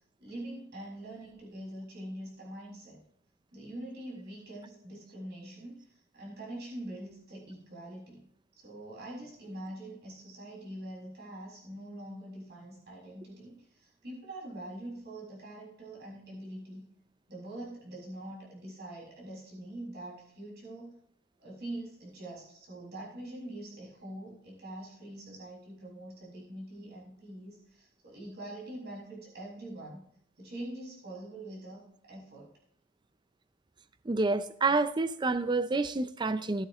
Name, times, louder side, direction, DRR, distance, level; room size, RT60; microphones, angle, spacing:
voice 1, 0.2-3.0 3.5-8.2 8.6-16.8 17.3-20.9 21.4-30.0 30.4-31.8 32.1-32.5, right 1 dB, 50° right, 5.8 m, -44 dB
voice 2, 34.1-36.7, right 3 dB, 20° right, 0.4 m, -28 dB
14.5 x 11.5 x 3.1 m
head